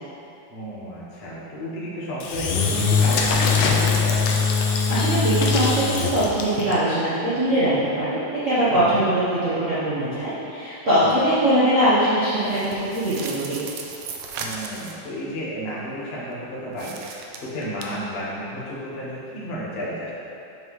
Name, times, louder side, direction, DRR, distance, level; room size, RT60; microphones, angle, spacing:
voice 1, 0.5-4.2 8.7-9.0 11.0-11.2 14.3-20.1, equal, 55° left, -7 dB, 0.6 m, -32 dB
Engine / Drill, 2.2-6.7, left 4 dB, 80° left, 2.0 m, -21 dB
voice 2, 4.9-7.7 8.0-8.2 8.4-13.6, right 1 dB, 65° right, -13 dB, 0.7 m, -21 dB
sound 1, 12.4-15.0 16.7-17.8, right 5 dB, 85° right, 1.4 m, -36 dB
7.6 x 5.6 x 3.2 m, 2.7 s
omnidirectional pair, 3.3 m